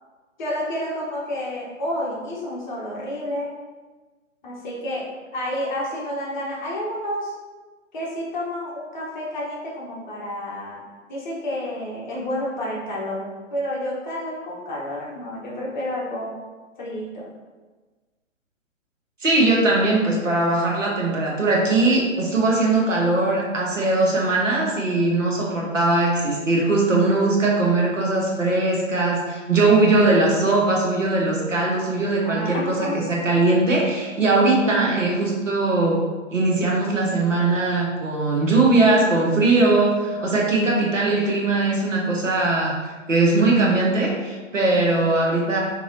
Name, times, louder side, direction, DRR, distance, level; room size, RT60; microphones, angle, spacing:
voice 1, 0.4-3.5 4.4-5.1 5.3-7.4 7.9-16.3 16.8-17.3 32.2-33.0, left 1 dB, 35° left, -5 dB, 1.0 m, -30 dB
voice 2, 19.2-36.0 36.3-42.7 43.1-45.6, right 2 dB, 75° right, -2 dB, 1.1 m, -20 dB
3.7 x 3.0 x 2.6 m, 1.3 s
figure-of-eight pair, 130°, 39 cm